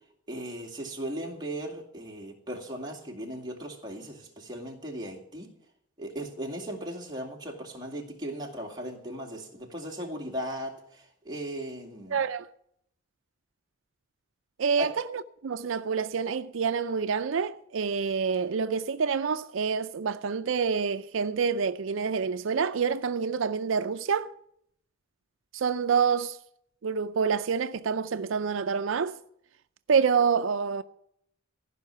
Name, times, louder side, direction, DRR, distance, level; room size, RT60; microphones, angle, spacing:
voice 1, 0.3-5.5 6.0-12.2 14.8-14.9, right 1 dB, 20° right, 2.4 m, -37 dB
voice 2, 12.1-12.4 14.6-24.3 25.5-26.4 26.8-29.2 29.9-30.8, right 6 dB, 85° right, 0.5 m, -27 dB
15.0 x 5.8 x 9.9 m
head